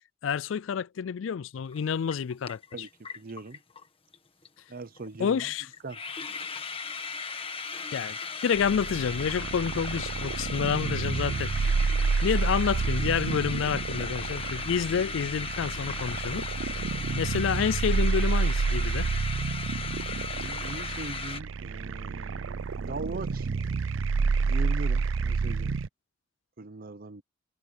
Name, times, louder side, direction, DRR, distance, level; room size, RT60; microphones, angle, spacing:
voice 1, 0.0-2.9 5.2-5.7 7.9-11.7 12.2-16.8 17.2-19.1, left 7 dB, 85° left, 0.4 m, -29 dB
sound 1, 1.7-1.8 2.1-3.9 4.1-4.2 4.4-4.7 5.0-5.1 5.4-5.5 5.7-21.4, left 5 dB, 30° left, 1.5 m, -37 dB
voice 2, 3.1-3.6 4.7-5.5 5.8-6.0 12.2-12.3 20.4-23.5 24.4-25.8 26.6-27.2, right 3 dB, 50° right, 0.8 m, -40 dB
sound 2, 8.6-25.9, right 4 dB, 90° right, 0.5 m, -29 dB
head